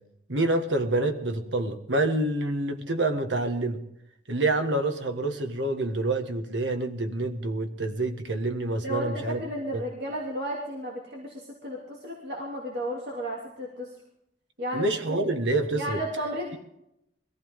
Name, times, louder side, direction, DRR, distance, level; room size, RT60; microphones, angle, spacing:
voice 1, 0.3-3.8 4.3-9.4 9.7-9.8 14.7-16.0, right 2 dB, 80° right, 6 dB, 1.7 m, -27 dB
voice 2, 8.8-13.9 14.6-15.2 15.8-16.6, equal, 60° right, -3 dB, 2.9 m, -33 dB
22.5 x 15.0 x 3.7 m, 0.79 s
head